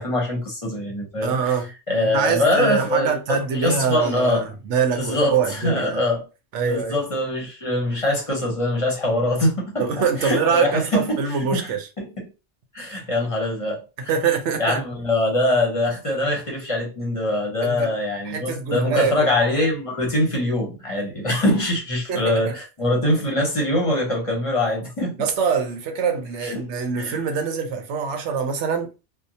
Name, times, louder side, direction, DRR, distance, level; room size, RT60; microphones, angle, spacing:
voice 1, 0.0-1.5 1.9-4.4 4.9-6.2 6.5-9.9 10.2-11.2 11.5-11.7 12.0-12.3 12.7-13.8 14.6-25.2 26.4-26.7 27.0-27.2, left 1 dB, 35° left, 0.7 m, -23 dB
voice 2, 1.2-1.7 2.1-6.0 6.5-7.0 9.8-11.9 14.0-14.8 17.6-17.9 18.3-19.3 22.1-22.6 25.2-28.9, right 6 dB, 75° right, 0.9 m, -24 dB
2.7 x 2.1 x 2.6 m
omnidirectional pair, 1.2 m